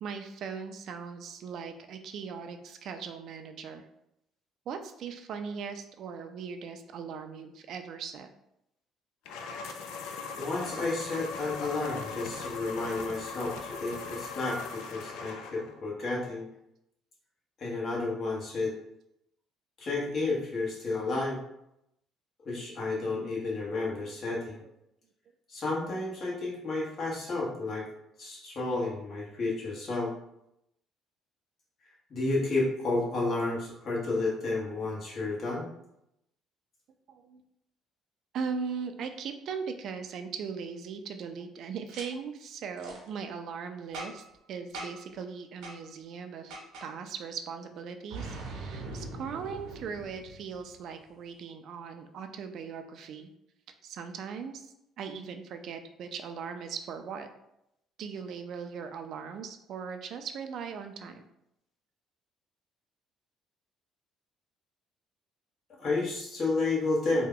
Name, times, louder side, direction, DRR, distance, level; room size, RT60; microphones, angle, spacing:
voice 1, 0.0-3.8 4.7-8.3 37.1-37.4 38.3-46.5 46.8-53.3 53.8-57.3 58.0-61.2, right 6 dB, 60° right, 7 dB, 0.4 m, -39 dB
sound 1, 9.3-15.8, left 4 dB, 90° left, 0.4 m, -40 dB
voice 2, 10.3-16.5 17.6-18.8 19.8-21.4 22.4-24.6 25.5-27.9 28.2-30.1 32.1-35.7 65.8-67.3, left 3 dB, 45° left, -4 dB, 1.2 m, -31 dB
Boom, 41.9-42.0 42.8-43.0 43.9-44.3 44.7-45.1 45.6-45.8 46.5-46.9 48.1-50.8, right 2 dB, 85° right, 0.8 m, -41 dB
2.8 x 2.2 x 3.7 m, 0.81 s
cardioid pair, 105°, 0 cm